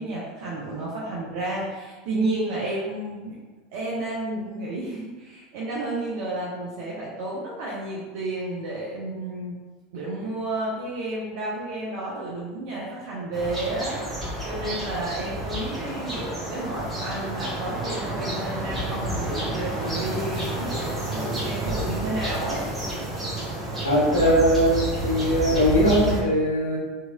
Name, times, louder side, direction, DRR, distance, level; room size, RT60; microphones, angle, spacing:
voice 1, 0.0-3.3 3.7-9.5 9.9-14.0 14.4-20.8 21.1-22.6, right 2 dB, 55° right, -6 dB, 0.5 m, -31 dB
sound 1, 13.3-26.2, right 1 dB, 15° right, 1.0 m, -30 dB
voice 2, 23.8-26.8, equal, 80° left, -5 dB, 0.9 m, -20 dB
2.8 x 2.8 x 2.2 m, 1.3 s
figure-of-eight pair, 80°, 0 cm